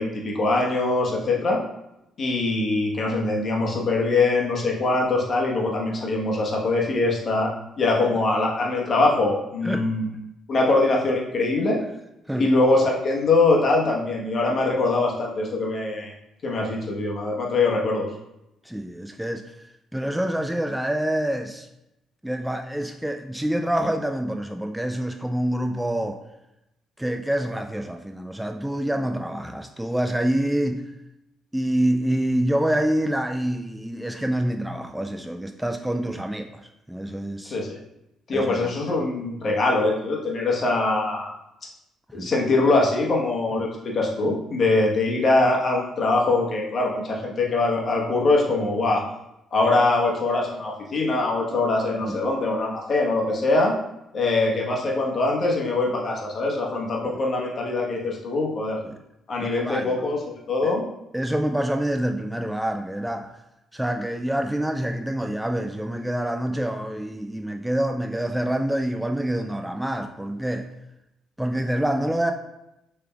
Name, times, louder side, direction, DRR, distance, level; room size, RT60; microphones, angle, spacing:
voice 1, 0.0-1.6 2.2-7.5 7.8-10.1 10.5-11.8 12.3-16.1 16.4-18.1 37.5-37.8 38.3-41.3 42.1-49.0 49.5-53.7 54.1-58.8 59.3-60.2 60.5-60.8, left 2 dB, 50° left, -2 dB, 1.2 m, -23 dB
voice 2, 18.7-19.4 19.9-21.7 22.2-26.2 27.0-30.8 31.5-36.5 36.9-37.6 38.3-38.7 42.2-42.3 52.0-52.2 57.0-57.1 58.8-59.0 59.4-60.0 60.6-60.8 61.1-63.3 63.7-70.7 71.4-72.3, right 1 dB, 5° right, 5 dB, 0.4 m, -26 dB
6.5 x 3.4 x 2.4 m, 0.87 s
hypercardioid pair, 50°, 0 cm